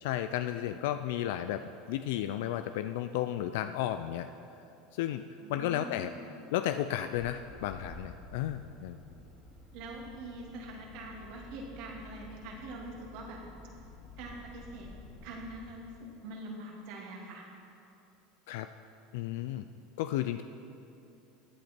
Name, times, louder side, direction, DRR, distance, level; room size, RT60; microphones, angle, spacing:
voice 1, 0.0-1.6 1.9-4.3 4.9-5.2 5.5-6.1 6.5-9.0 18.5-18.7 19.1-19.6 20.0-20.4, left 12 dB, 75° left, 10 dB, 0.3 m, -33 dB
voice 2, 5.4-6.2 9.7-13.4 14.2-14.9 15.2-17.4, right 2 dB, 65° right, -1 dB, 2.3 m, -44 dB
sound 1, 7.1-15.7, left 2 dB, 30° left, 2.9 m, -51 dB
14.5 x 8.6 x 4.4 m, 2.7 s
hypercardioid pair, 95°, 0 cm